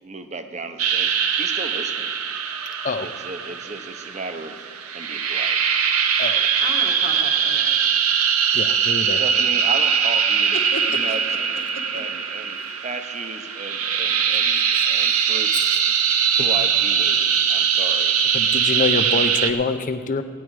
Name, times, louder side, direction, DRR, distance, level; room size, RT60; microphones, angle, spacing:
voice 1, 0.0-2.1 3.0-4.7 4.9-5.6 9.2-10.6 10.9-11.2 11.9-15.7 16.4-18.2 18.5-18.6, right 3 dB, 30° right, 8 dB, 0.7 m, -34 dB
sound 1, 0.8-19.5, right 7 dB, 85° right, 0.7 m, -21 dB
voice 2, 6.6-7.8 10.5-11.4 11.7-12.0, left 2 dB, 50° left, -4 dB, 1.1 m, -34 dB
voice 3, 8.5-9.2 14.7-14.9 15.5-15.8 16.4-16.5 18.3-20.2, left 3 dB, 35° left, 9 dB, 0.6 m, -26 dB
17.0 x 10.0 x 4.7 m, 2.1 s
head